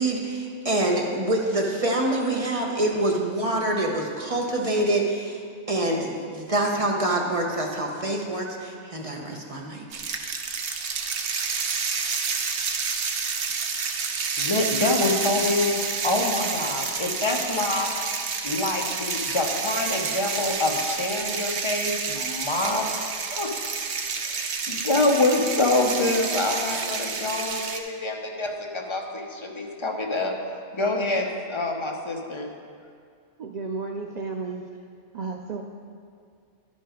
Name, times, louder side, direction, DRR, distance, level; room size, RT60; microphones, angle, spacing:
voice 1, 0.0-5.4 5.7-9.8, right 1 dB, 30° right, -1 dB, 0.8 m, -26 dB
sound 1, 9.9-27.8, right 5 dB, 60° right, 0.8 m, -29 dB
voice 2, 14.4-17.9 18.4-23.5 24.2-30.3 30.7-32.5, left 2 dB, 30° left, 1 dB, 0.6 m, -26 dB
voice 3, 33.4-34.7 35.1-35.6, right 4 dB, 80° right, 2 dB, 0.3 m, -32 dB
11.0 x 5.2 x 5.0 m, 2.2 s
omnidirectional pair, 1.3 m